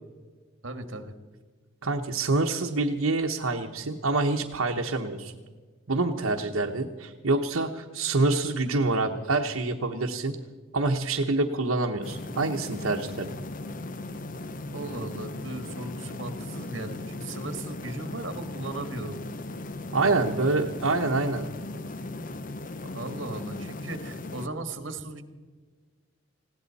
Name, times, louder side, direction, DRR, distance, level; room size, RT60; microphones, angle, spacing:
voice 1, 0.6-1.1 14.7-19.1 20.0-20.4 22.8-25.2, right 2 dB, 65° right, 8 dB, 1.6 m, -37 dB
voice 2, 1.8-5.3 5.9-10.4 10.7-13.4 19.9-21.5, right 3 dB, 80° right, 1 dB, 1.0 m, -26 dB
sound 1, 12.0-24.5, left 2 dB, 40° left, 0.7 m, -37 dB
20.5 x 17.0 x 4.2 m, 1.5 s
head